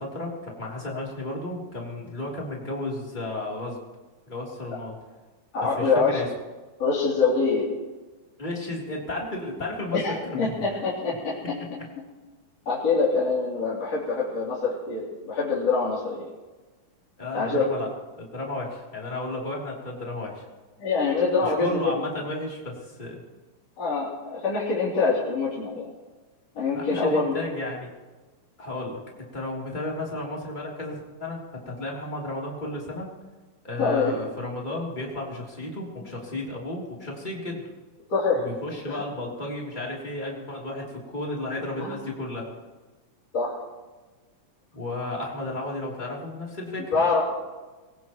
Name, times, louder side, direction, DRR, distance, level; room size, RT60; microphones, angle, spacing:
voice 1, 0.0-3.8 4.3-4.9 5.7-6.3 8.4-10.7 17.2-17.9 18.2-20.4 21.4-23.2 26.7-27.9 28.6-29.0 29.3-33.1 33.6-37.6 38.4-42.5 44.7-46.9, left 2 dB, 15° left, -3 dB, 3.2 m, -33 dB
voice 2, 5.5-6.2 6.8-7.7 9.9-11.6 12.7-16.3 17.3-17.6 20.8-21.8 23.8-25.9 26.5-27.3 33.8-34.1 38.1-38.5 38.9-39.0 41.8-41.9 43.3-43.6 46.9-47.3, left 4 dB, 55° left, -7 dB, 4.3 m, -25 dB
22.0 x 18.5 x 3.1 m, 1.2 s
omnidirectional pair, 3.5 m